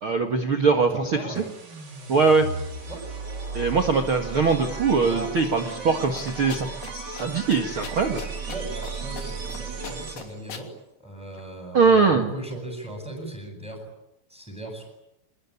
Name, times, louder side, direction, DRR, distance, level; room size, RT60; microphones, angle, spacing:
voice 1, 0.0-1.4 2.1-2.5 3.5-8.2 11.7-12.3, right 4 dB, 65° right, 4 dB, 1.3 m, -22 dB
voice 2, 0.9-1.5 2.9-3.1 5.0-5.3 8.5-10.7 11.0-13.9 14.3-14.9, right 1 dB, ahead, 0 dB, 7.3 m, -37 dB
sound 1, 1.3-10.5, right 4 dB, 30° right, 2.3 m, -35 dB
sound 2, 6.2-6.9 7.2-7.3 7.5-8.9 9.2-9.6 9.8-10.7, left 6 dB, 45° left, 4.3 m, -38 dB
27.5 x 21.5 x 9.8 m, 0.86 s
omnidirectional pair, 5.7 m